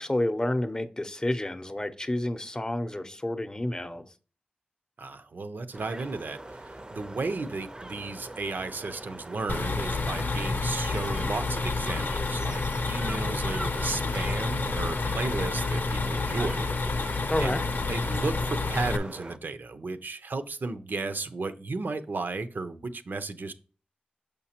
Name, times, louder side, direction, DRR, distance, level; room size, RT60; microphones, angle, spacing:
voice 1, 0.0-4.0 17.3-17.6, left 1 dB, 25° left, 0.6 m, -29 dB
voice 2, 5.0-17.1 17.4-17.6 17.9-23.5, right 3 dB, 75° right, 0.5 m, -34 dB
sound 1, 5.7-19.4, right 1 dB, 25° right, 0.4 m, -42 dB
sound 2, 9.5-19.0, left 3 dB, 75° left, 0.6 m, -29 dB
6.4 x 5.2 x 2.8 m
wide cardioid pair, 70°, 3 cm